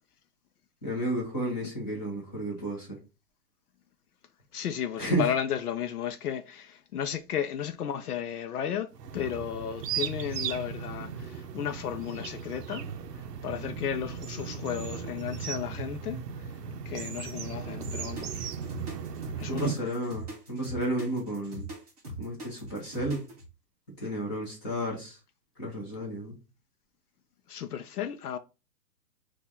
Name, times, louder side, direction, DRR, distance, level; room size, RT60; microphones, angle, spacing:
voice 1, 0.8-3.0 5.0-5.2 19.5-21.7 22.2-23.2 24.0-25.2 25.6-26.3, right 1 dB, 10° left, 0.9 m, -32 dB
voice 2, 4.5-12.8 13.4-16.2 16.9-18.5 19.4-19.7 27.5-28.4, left 9 dB, 65° left, 0.6 m, -34 dB
sound 1, 8.9-19.7, right 7 dB, 75° right, 0.7 m, -37 dB
sound 2, 17.8-23.5, right 1 dB, 25° right, 0.7 m, -40 dB
4.1 x 2.5 x 4.2 m
hypercardioid pair, 170°, 49 cm